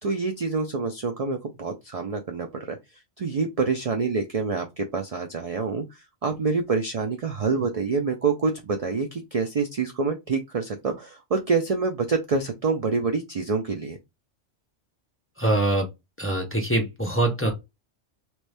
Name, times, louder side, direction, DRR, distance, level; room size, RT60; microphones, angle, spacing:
voice 1, 0.0-2.8 3.2-5.8 6.2-14.0, right 4 dB, 60° right, 0.3 m, -26 dB
voice 2, 15.4-15.9 16.2-17.5, right 1 dB, 15° left, 0.6 m, -23 dB
3.0 x 2.6 x 3.3 m
omnidirectional pair, 1.2 m